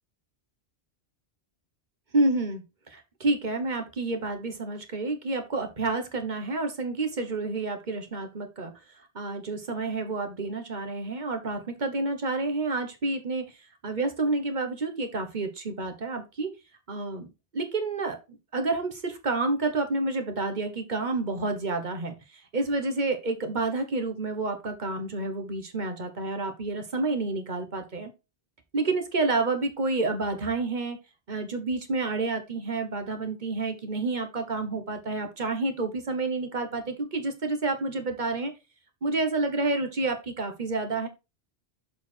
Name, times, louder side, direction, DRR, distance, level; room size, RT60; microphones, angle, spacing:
voice 1, 2.1-8.7 9.1-13.5 13.8-16.5 16.9-17.3 17.5-28.1 28.7-31.0 31.3-38.5 39.0-41.1, right 3 dB, 45° right, 6 dB, 1.3 m, -29 dB
6.9 x 4.3 x 4.4 m, 0.26 s
omnidirectional pair, 1.1 m